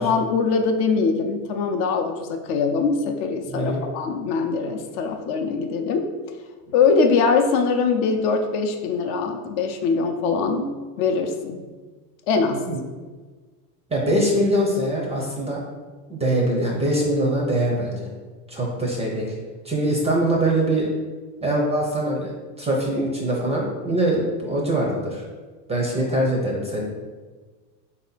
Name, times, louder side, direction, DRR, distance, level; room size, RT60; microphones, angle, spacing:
voice 1, 0.0-6.1 6.7-10.7 11.0-11.6 12.3-12.7, left 4 dB, 55° left, 5 dB, 0.6 m, -22 dB
voice 2, 3.5-3.8 12.7-12.8 13.9-15.6 16.1-18.1 18.5-19.3 19.6-20.9 21.4-22.3 22.6-25.2 25.7-26.8, right 1 dB, 15° right, -1 dB, 0.5 m, -23 dB
3.8 x 2.8 x 3.9 m, 1.4 s
supercardioid pair, 120°, 50 cm